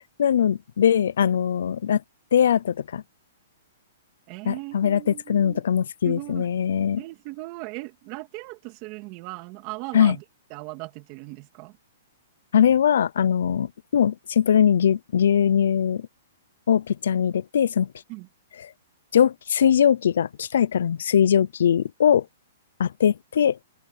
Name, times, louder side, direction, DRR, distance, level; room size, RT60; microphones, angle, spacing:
voice 1, 0.2-2.0 2.3-3.0 4.4-7.0 9.9-10.2 12.5-16.1 16.7-17.9 19.1-22.3 22.8-23.6, left 8 dB, 75° left, 0.6 m, -21 dB
voice 2, 4.3-5.6 6.0-6.5 7.0-10.2 10.5-11.8 18.1-18.3, right 23 dB, 30° right, 2.8 m, -38 dB
hypercardioid pair, 160°, 0 cm